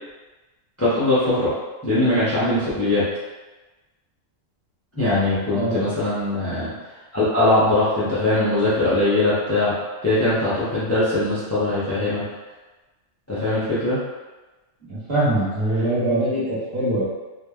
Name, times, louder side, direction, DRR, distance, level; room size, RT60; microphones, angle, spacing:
voice 1, 0.8-1.5 1.8-3.0 5.0-6.7 7.1-9.7 10.0-12.2 13.3-14.0, left 2 dB, 20° left, -11 dB, 0.5 m, -21 dB
voice 2, 5.5-5.9 14.9-17.0, right 1 dB, 50° right, -10 dB, 1.2 m, -23 dB
3.2 x 2.3 x 2.2 m, 1.2 s
omnidirectional pair, 1.3 m